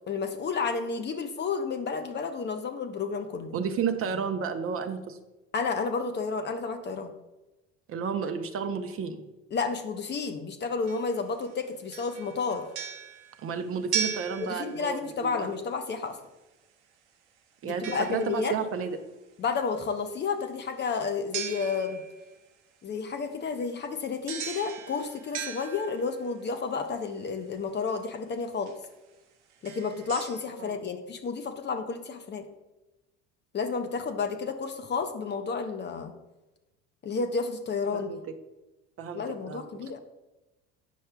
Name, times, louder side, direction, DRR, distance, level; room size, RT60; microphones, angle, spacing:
voice 1, 0.0-3.6 5.5-7.1 9.5-12.7 14.4-16.2 17.6-18.5 19.4-22.0 22.8-28.7 29.6-32.5 33.5-36.1 37.0-38.1 39.1-40.0, left 5 dB, 30° left, 7 dB, 0.6 m, -31 dB
voice 2, 3.5-5.2 7.9-9.2 13.4-15.5 17.6-19.0 30.6-30.7 37.9-38.2 39.0-39.7, right 6 dB, 40° right, 7 dB, 0.7 m, -32 dB
sound 1, 10.9-11.5 11.9-15.2 17.8-18.7 21.3-22.3 24.3-26.4 27.9-28.0 28.7-28.9 29.5-30.5, right 8 dB, 80° right, 0.8 m, -37 dB
8.2 x 5.4 x 2.3 m, 1.0 s
hypercardioid pair, 75°, 34 cm